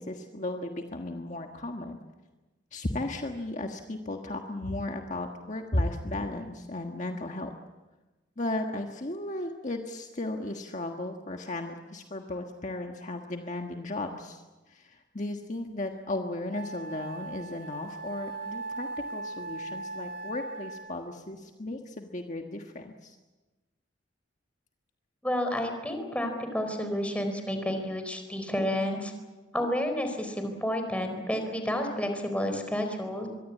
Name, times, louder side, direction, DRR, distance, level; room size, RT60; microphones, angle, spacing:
voice 1, 0.0-2.0 2.7-7.5 8.4-23.2, left 2 dB, 40° left, 3 dB, 1.5 m, -35 dB
Wind instrument woodwind instrument, 15.9-16.0 16.5-21.2, right 3 dB, 55° right, 3.2 m, -39 dB
voice 2, 25.2-29.1 29.5-33.3, equal, 5° left, 5 dB, 4.4 m, -30 dB
25.0 x 22.5 x 8.5 m, 1.2 s
head